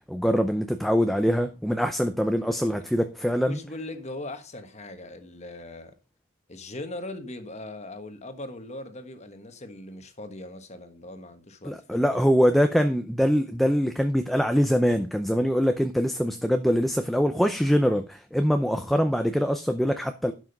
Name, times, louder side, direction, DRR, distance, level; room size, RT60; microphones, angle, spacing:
voice 1, 0.1-3.6 11.6-20.3, equal, ahead, 0.5 m, -23 dB
voice 2, 2.2-2.9 3.2-5.9 6.5-12.2, left 2 dB, 30° left, 1.4 m, -40 dB
11.5 x 6.1 x 5.4 m
head